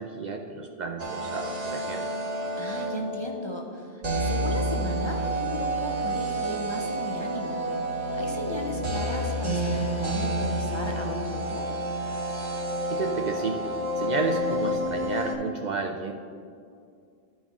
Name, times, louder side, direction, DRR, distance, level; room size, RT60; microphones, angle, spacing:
voice 1, 0.0-2.1 12.9-13.6 14.0-16.1, right 4 dB, 55° right, 3 dB, 0.5 m, -31 dB
sound 1, 1.0-3.3 4.0-15.4, right 1 dB, 40° right, 0.9 m, -29 dB
voice 2, 2.6-7.7 8.2-11.7, left 1 dB, 35° left, 0 dB, 0.5 m, -36 dB
12.0 x 4.2 x 3.5 m, 2.3 s
omnidirectional pair, 1.1 m